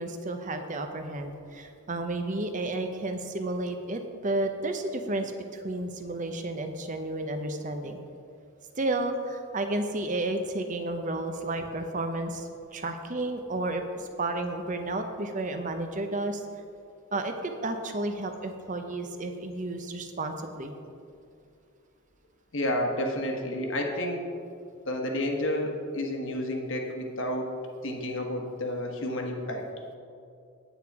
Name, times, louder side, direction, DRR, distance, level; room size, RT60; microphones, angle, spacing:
voice 1, 0.0-8.0 8.8-16.4 17.1-20.7, right 2 dB, 35° right, 6 dB, 0.7 m, -32 dB
voice 2, 22.5-24.3 24.8-27.5 27.8-29.6, left 1 dB, 60° left, 2 dB, 1.3 m, -30 dB
9.0 x 8.5 x 4.7 m, 2.4 s
head